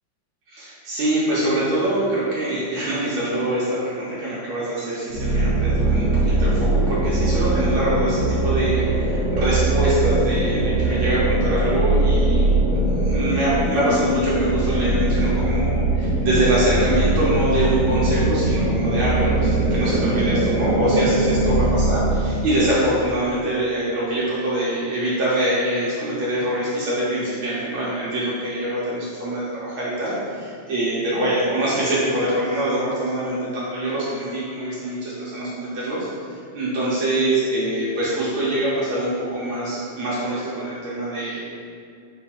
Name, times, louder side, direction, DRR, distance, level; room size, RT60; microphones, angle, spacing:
voice 1, 0.5-12.5 12.9-41.4, right 1 dB, 80° right, -8 dB, 1.6 m, -24 dB
sound 1, 5.1-22.5, right 2 dB, 55° right, 1.6 m, -21 dB
4.6 x 2.4 x 4.2 m, 2.3 s
omnidirectional pair, 2.2 m